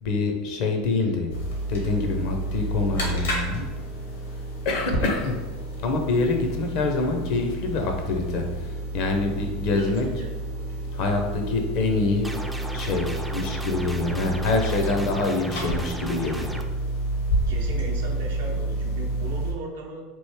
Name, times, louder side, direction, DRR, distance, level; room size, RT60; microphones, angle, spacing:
voice 1, 0.0-1.4 1.7-3.7 4.6-5.4 5.8-10.1 10.9-12.3 12.7-16.6, left 3 dB, 60° left, 3 dB, 0.6 m, -25 dB
sound 1, 1.3-19.5, right 1 dB, 80° left, 1.0 m, -30 dB
voice 2, 9.7-10.3 14.8-15.1 17.5-20.0, right 3 dB, 75° right, 1 dB, 0.6 m, -37 dB
sound 2, 12.2-16.6, right 1 dB, 5° right, 0.3 m, -36 dB
3.0 x 2.6 x 3.4 m, 1.3 s
hypercardioid pair, 80°, 0 cm